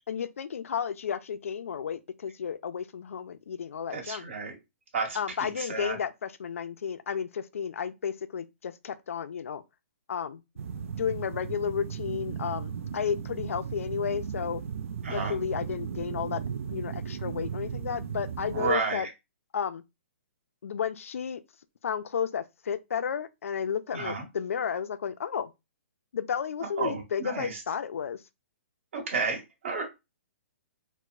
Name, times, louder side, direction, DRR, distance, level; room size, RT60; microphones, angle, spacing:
voice 1, 0.1-4.2 5.1-9.6 10.1-10.4 10.7-14.6 15.1-16.4 16.7-19.1 19.5-19.8 20.6-21.4 21.8-25.5 26.1-28.2, left 7 dB, 85° left, 0.4 m, -32 dB
voice 2, 3.9-4.5 4.9-5.9 15.0-15.4 18.5-19.1 23.9-24.2 26.8-27.5 28.9-29.8, right 4 dB, 60° right, 1.4 m, -31 dB
sound 1, 10.6-18.7, right 7 dB, 75° right, 0.4 m, -36 dB
4.6 x 2.1 x 2.4 m
hypercardioid pair, 155°, 7 cm